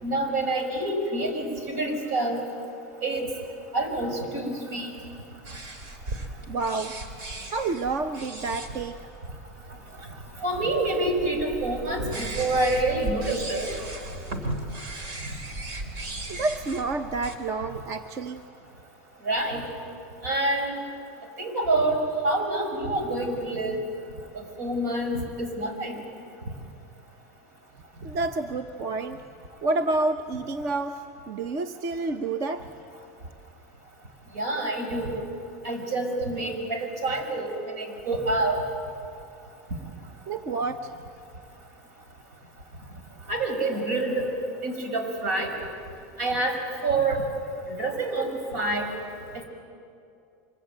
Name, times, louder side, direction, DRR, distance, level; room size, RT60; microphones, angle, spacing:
voice 1, 0.0-2.4 3.0-3.3 3.7-4.9 10.4-13.7 19.2-19.7 20.2-20.8 21.4-23.8 24.3-26.1 34.3-35.2 35.6-37.5 37.8-38.6 43.3-44.3 44.6-45.5 46.2-46.6 46.8-47.2 47.7-48.9 49.3-49.4, right 2 dB, 80° right, 5 dB, 5.9 m, -27 dB
sound 1, 5.4-17.4, right 2 dB, 55° right, 3.3 m, -37 dB
voice 2, 6.5-7.0 7.5-9.0 16.3-18.4 28.0-29.2 29.6-32.7 40.3-41.0, right 3 dB, 35° right, 9 dB, 0.8 m, -29 dB
25.0 x 23.0 x 9.2 m, 2.6 s
supercardioid pair, 160°, 9 cm